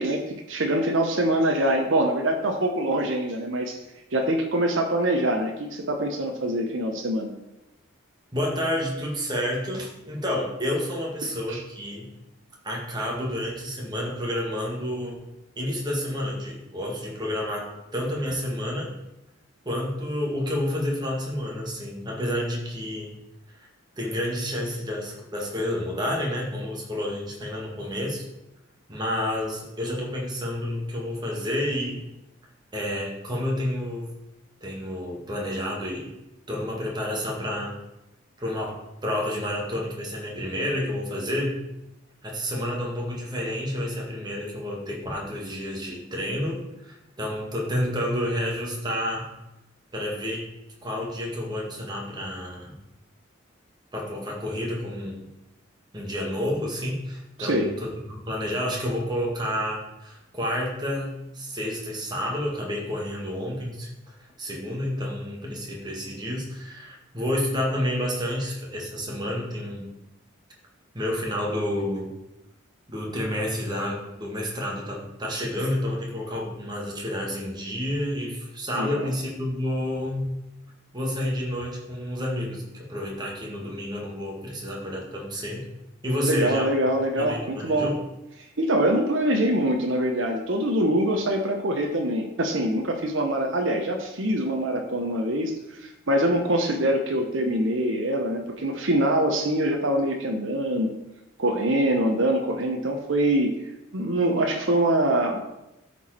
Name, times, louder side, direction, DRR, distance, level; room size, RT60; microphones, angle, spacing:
voice 1, 0.0-3.8 4.1-7.3 11.5-11.6 57.4-57.7 78.7-79.1 86.3-87.9 88.6-95.5 95.8-100.9 101.4-103.6 103.9-105.4, right 1 dB, 70° right, 2 dB, 1.0 m, -24 dB
voice 2, 8.3-12.1 12.6-15.2 15.6-18.9 19.7-23.2 23.6-23.7 24.0-28.3 28.9-32.0 32.7-34.1 34.6-36.1 36.5-37.7 38.4-41.6 42.2-49.3 49.9-50.5 50.8-52.8 53.9-55.3 55.9-63.9 64.2-69.9 70.9-72.1 72.9-80.3 80.9-85.7 86.0-86.7 87.2-88.0, left 1 dB, 20° right, -2 dB, 1.8 m, -30 dB
12.5 x 4.6 x 4.4 m, 0.92 s
head